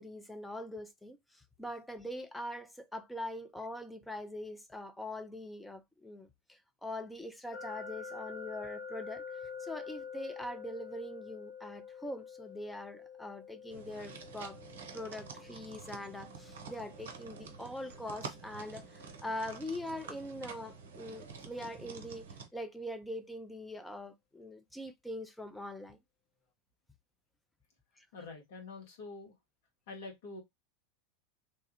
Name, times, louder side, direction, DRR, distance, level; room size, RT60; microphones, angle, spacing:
voice 1, 0.0-9.2 9.6-14.6 14.9-26.0 28.0-28.1, left 1 dB, 5° left, 0.5 m, -43 dB
sound 1, 7.5-20.4, left 6 dB, 35° left, 1.0 m, -48 dB
sound 2, 13.7-22.5, right 5 dB, 65° right, 0.6 m, -48 dB
voice 2, 28.1-29.3 29.9-30.4, left 3 dB, 60° left, 1.2 m, -46 dB
3.2 x 2.3 x 2.9 m
figure-of-eight pair, 85°, 0 cm